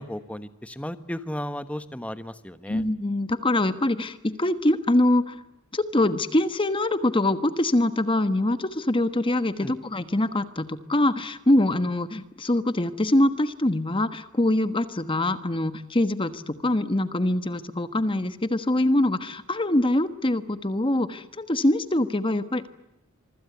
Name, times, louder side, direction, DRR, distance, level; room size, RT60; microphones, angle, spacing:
voice 1, 0.0-2.8 9.6-9.7, left 1 dB, 5° left, 11 dB, 1.2 m, -35 dB
voice 2, 2.7-5.4 5.7-22.7, left 1 dB, 25° left, 11 dB, 1.3 m, -24 dB
26.0 x 24.5 x 8.1 m, 0.88 s
head